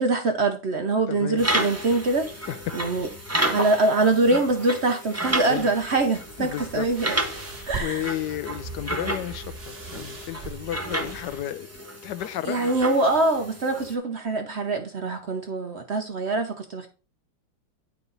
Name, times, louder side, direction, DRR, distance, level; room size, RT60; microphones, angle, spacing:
voice 1, 0.0-3.1 3.5-7.2 7.7-8.1 12.4-16.9, right 2 dB, 65° right, 0.6 m, -24 dB
voice 2, 1.1-1.5 2.5-2.6 5.5-5.7 6.4-6.9 7.6-11.7 12.0-12.6, left 12 dB, 75° left, 1.0 m, -32 dB
sound 1, 1.4-13.9, right 1 dB, 15° right, 0.5 m, -32 dB
sound 2, 6.2-11.5, right 4 dB, 35° right, 1.4 m, -40 dB
9.7 x 4.9 x 4.0 m
omnidirectional pair, 2.2 m